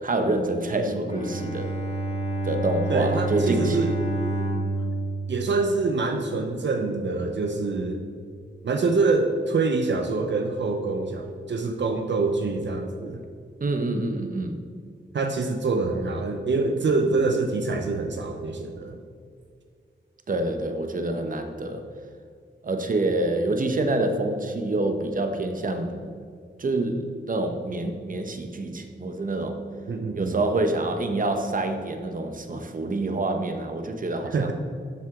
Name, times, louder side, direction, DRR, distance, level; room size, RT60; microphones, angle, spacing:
voice 1, 0.0-1.7 2.4-3.8 13.6-14.5 20.3-21.8 22.6-26.0 26.6-29.6 30.1-34.5, right 2 dB, 45° right, 6 dB, 0.9 m, -27 dB
voice 2, 0.8-1.3 2.9-3.9 5.3-8.1 8.6-13.2 15.1-19.0 29.9-30.4 34.2-34.5, right 3 dB, 70° right, 5 dB, 0.8 m, -25 dB
Bowed string instrument, 1.1-6.4, right 2 dB, 35° left, 2.4 m, -29 dB
12.0 x 7.7 x 3.7 m, 2.2 s
wide cardioid pair, 120°, 20 cm